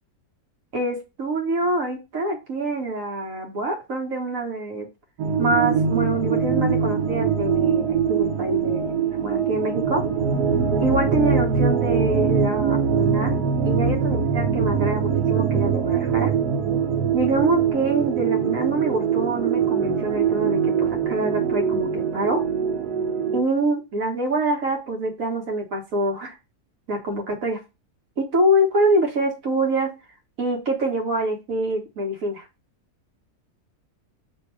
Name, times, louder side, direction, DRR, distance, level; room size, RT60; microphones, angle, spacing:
voice 1, 0.7-4.9 5.4-10.0 10.8-13.3 13.6-16.3 17.1-22.4 23.3-26.3 26.9-27.6 28.2-29.9 30.4-32.4, right 1 dB, 60° right, 1 dB, 1.4 m, -25 dB
sound 1, 5.2-23.4, right 6 dB, 85° right, 1.2 m, -22 dB
2.9 x 2.7 x 4.4 m, 0.26 s
omnidirectional pair, 1.7 m